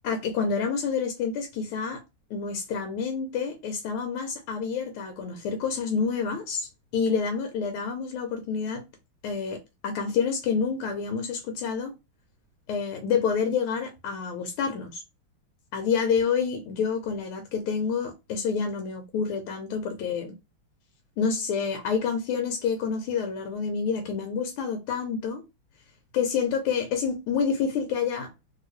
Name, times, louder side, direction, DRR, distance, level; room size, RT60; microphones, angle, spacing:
voice 1, 0.0-2.0 2.3-8.8 9.2-11.9 12.7-15.0 15.7-20.4 21.2-25.4 26.1-28.3, left 6 dB, 85° left, 1.5 m, -28 dB
3.2 x 2.8 x 3.1 m
omnidirectional pair, 2.4 m